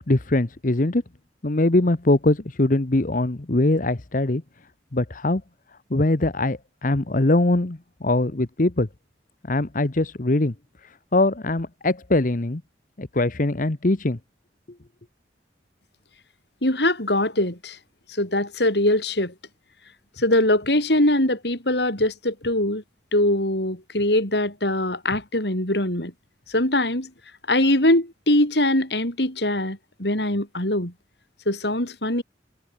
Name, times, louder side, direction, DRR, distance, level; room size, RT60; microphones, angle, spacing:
voice 1, 0.1-1.0 1.4-4.4 4.9-5.4 5.9-8.9 9.5-10.5 11.1-12.6 13.0-14.2, left 2 dB, 50° left, 1.1 m, -22 dB
voice 2, 16.6-17.8 18.1-19.3 20.2-22.8 23.1-26.1 26.5-27.1 27.5-30.9 31.5-32.2, left 1 dB, 70° left, 7.9 m, -22 dB
head